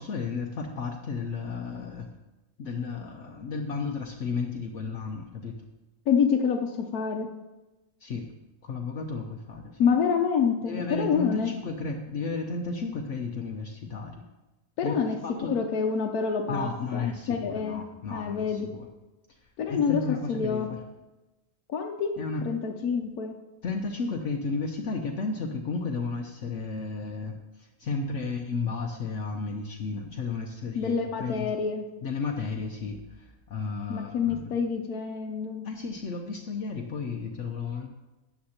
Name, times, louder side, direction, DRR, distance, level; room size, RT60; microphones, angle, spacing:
voice 1, 0.0-2.1 2.6-5.5 8.0-8.2 8.6-9.8 10.6-14.2 14.8-15.6 16.5-18.9 19.7-20.8 22.2-22.4 23.6-30.9 31.2-31.5 32.0-34.5 35.6-37.9, left 4 dB, 60° left, 3 dB, 1.0 m, -33 dB
voice 2, 6.1-7.3 9.8-11.5 14.8-15.2 15.5-17.8 18.1-18.7 19.6-20.0 20.3-20.7 21.7-22.1 22.4-23.3 30.7-31.9 33.9-35.6, left 6 dB, 85° left, 2 dB, 1.2 m, -27 dB
13.0 x 8.6 x 2.9 m, 1.0 s
omnidirectional pair, 1.5 m